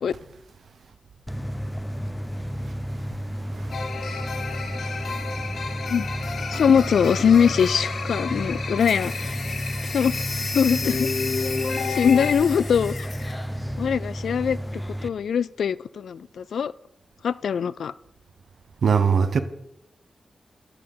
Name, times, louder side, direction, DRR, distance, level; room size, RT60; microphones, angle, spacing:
sound 1, 1.3-15.1, equal, 5° left, 0.6 m, -32 dB
sound 2, 3.7-12.3, left 5 dB, 70° left, 1.2 m, -32 dB
voice 1, 6.5-9.4 9.9-10.2 10.5-11.1 11.9-12.9 13.8-16.7 17.2-17.9, left 7 dB, 85° left, 0.3 m, -22 dB
sound 3, 8.8-13.4, left 3 dB, 55° left, 1.9 m, -35 dB
voice 2, 18.8-19.4, right 6 dB, 70° right, 0.8 m, -20 dB
11.5 x 5.7 x 6.8 m
wide cardioid pair, 100°, 0 cm